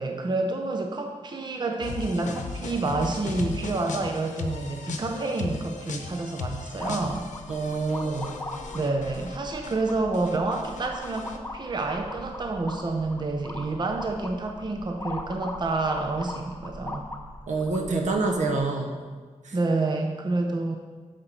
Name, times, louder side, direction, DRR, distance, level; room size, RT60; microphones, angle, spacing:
voice 1, 0.0-7.3 8.7-17.1 19.5-20.8, right 3 dB, 35° right, 3 dB, 0.6 m, -28 dB
sound 1, 1.8-9.4 9.6-11.4, left 4 dB, 85° left, 0.7 m, -37 dB
sound 2, 6.8-18.6, left 2 dB, 15° left, 0.8 m, -40 dB
voice 2, 7.5-8.3 17.5-19.0 19.4-19.5, right 3 dB, 75° right, 3 dB, 1.0 m, -27 dB
7.9 x 6.7 x 4.4 m, 1.5 s
wide cardioid pair, 105°, 12 cm